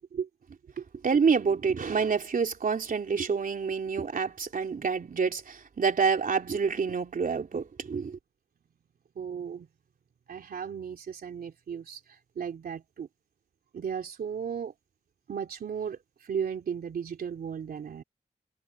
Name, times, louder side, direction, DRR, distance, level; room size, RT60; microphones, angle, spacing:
voice 1, 1.0-8.2, right 5 dB, 65° right, 3.9 m, -27 dB
voice 2, 9.1-9.7 10.3-13.1 13.7-14.7 15.3-18.0, right 7 dB, 85° right, 3.3 m, -35 dB
cardioid pair, 50°, 15 cm